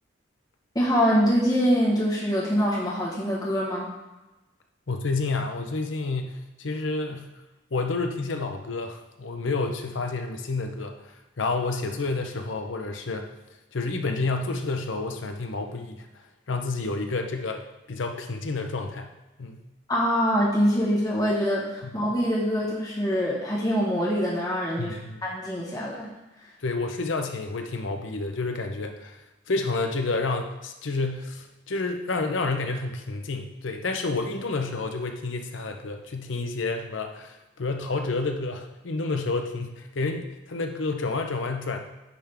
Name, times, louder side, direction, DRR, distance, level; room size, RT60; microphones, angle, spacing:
voice 1, 0.7-3.9 19.9-24.9 25.2-26.1, equal, 20° left, -6 dB, 1.3 m, -24 dB
voice 2, 4.9-7.3 7.7-13.3 13.7-16.1 16.5-19.1 19.4-19.6 21.8-21.9 24.8-25.2 26.6-29.2 29.5-41.8, left 3 dB, 85° left, 5 dB, 0.7 m, -29 dB
10.0 x 3.7 x 3.5 m, 1.0 s
head